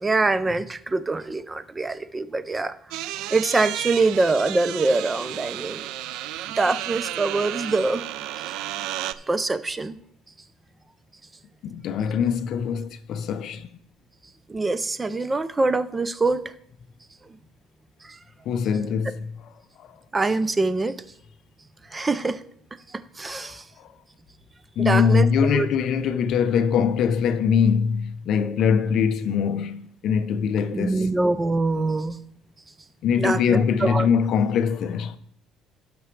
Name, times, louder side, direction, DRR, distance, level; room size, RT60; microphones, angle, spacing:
voice 1, 0.0-2.7 3.3-5.8 6.6-8.0 9.3-10.0 14.5-16.5 18.1-18.2 20.1-20.9 21.9-22.4 22.9-23.6 24.8-25.7 30.7-32.2 33.2-34.1, right 3 dB, 15° right, 0.5 m, -24 dB
sound 1, 2.9-9.1, right 13 dB, 80° right, 0.4 m, -32 dB
voice 2, 11.6-13.7 18.5-19.3 19.8-19.9 23.4-23.9 24.8-31.1 33.0-35.2, left 7 dB, 50° left, 0.6 m, -23 dB
16.5 x 6.0 x 3.2 m
cardioid pair, 150°, 0 cm